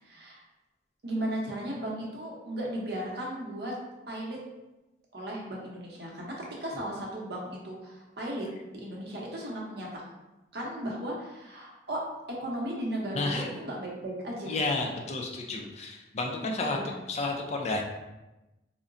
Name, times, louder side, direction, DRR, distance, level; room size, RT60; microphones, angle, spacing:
voice 1, 0.0-0.4 1.0-3.7 4.1-4.4 5.1-10.0 10.5-12.0 12.4-14.6 16.6-17.0, right 1 dB, 60° right, -3 dB, 0.7 m, -36 dB
voice 2, 13.1-13.5 14.5-16.8 17.1-17.8, left 2 dB, 35° left, 1 dB, 0.3 m, -31 dB
3.7 x 2.1 x 2.5 m, 1.0 s
head